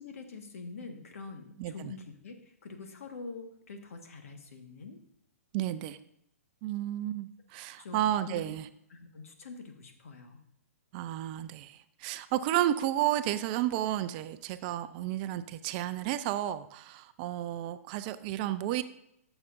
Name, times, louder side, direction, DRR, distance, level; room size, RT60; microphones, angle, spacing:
voice 1, 0.0-2.3 2.6-5.0 7.8-8.4 8.9-10.4, left 4 dB, 65° left, 5 dB, 1.5 m, -45 dB
voice 2, 1.6-1.9 5.5-6.0 6.6-8.7 10.9-18.8, right 13 dB, 35° right, 12 dB, 0.5 m, -32 dB
13.5 x 7.0 x 2.6 m, 0.77 s
hypercardioid pair, 125°, 8 cm